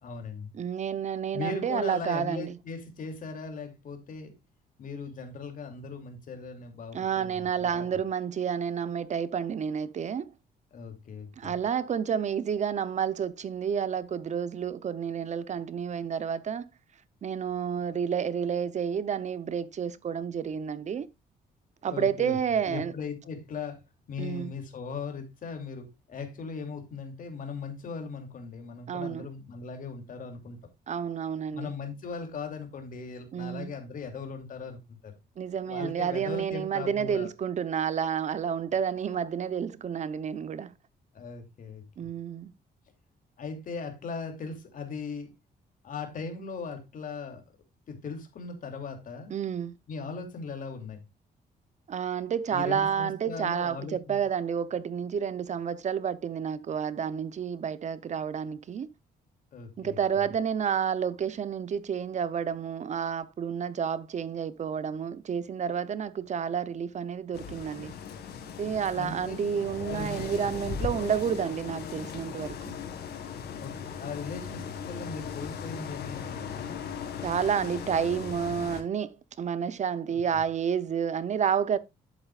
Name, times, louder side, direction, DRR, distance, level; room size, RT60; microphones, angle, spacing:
voice 1, 0.0-0.5 1.3-4.3 4.8-7.8 10.7-11.6 21.9-23.8 24.1-30.6 31.5-35.2 35.6-37.3 41.1-42.1 43.4-45.3 45.8-47.4 47.9-49.4 49.9-51.0 52.5-54.2 59.5-60.2 68.9-69.3 69.8-70.3 70.9-71.1 73.6-76.7 80.1-80.2, left 4 dB, 55° left, 2.7 m, -39 dB
voice 2, 0.5-2.6 6.9-10.3 11.4-16.6 17.2-21.1 21.8-22.9 24.2-24.5 28.9-29.3 30.9-31.7 33.3-33.7 35.4-40.7 42.0-42.5 49.3-49.7 51.9-58.9 59.8-67.9 68.6-72.8 77.2-81.8, right 7 dB, 45° right, 0.7 m, -30 dB
sound 1, 67.3-78.8, left 7 dB, 80° left, 1.9 m, -38 dB
10.5 x 8.2 x 2.4 m
cardioid pair, 125°, 17 cm